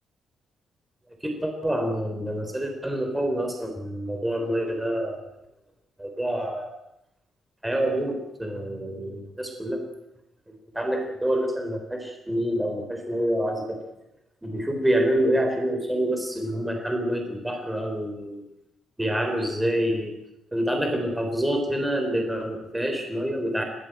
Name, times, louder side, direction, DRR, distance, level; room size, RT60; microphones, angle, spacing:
voice 1, 1.2-5.3 6.0-6.7 7.6-9.8 10.5-13.8 14.4-18.4 19.0-20.2 20.5-23.6, right 1 dB, 5° right, 4 dB, 3.6 m, -27 dB
21.0 x 17.5 x 8.9 m, 0.87 s
cardioid pair, 155°, 0 cm